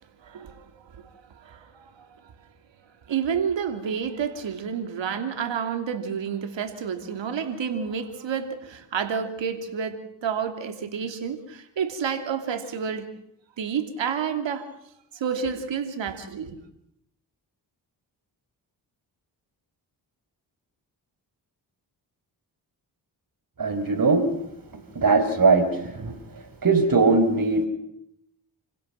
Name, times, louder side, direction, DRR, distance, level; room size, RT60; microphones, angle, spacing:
voice 1, 0.2-1.1 1.3-2.2 3.1-13.1 13.6-14.7 15.1-16.6, right 7 dB, 80° right, 7 dB, 3.1 m, -30 dB
voice 2, 23.6-24.3 24.9-26.1 26.6-27.7, right 3 dB, 50° right, 9 dB, 5.0 m, -20 dB
29.5 x 16.5 x 5.9 m, 0.75 s
cardioid pair, 50°, 44 cm